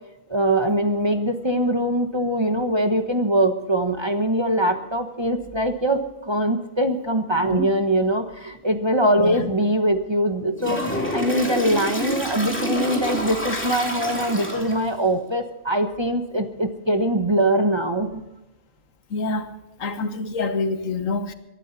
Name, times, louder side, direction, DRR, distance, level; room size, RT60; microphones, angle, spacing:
voice 1, 0.3-18.2, right 1 dB, 20° right, 1.1 m, -22 dB
voice 2, 9.2-9.5 13.5-13.6 19.1-19.5 19.8-21.3, left 3 dB, 85° left, 1.6 m, -26 dB
Toilet flush, 10.6-15.0, left 1 dB, 10° left, 2.7 m, -28 dB
23.5 x 11.5 x 4.1 m
omnidirectional pair, 1.3 m